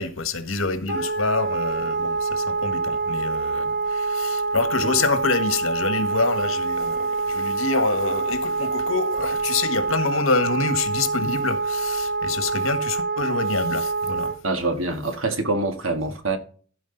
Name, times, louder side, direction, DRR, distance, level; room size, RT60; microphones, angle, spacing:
voice 1, 0.0-14.3, left 3 dB, 85° left, 1.5 m, -26 dB
Wind instrument woodwind instrument, 0.9-14.4, right 3 dB, 55° right, 2.4 m, -26 dB
voice 2, 14.4-16.4, right 2 dB, 85° right, 1.8 m, -25 dB
15.0 x 5.1 x 3.9 m
head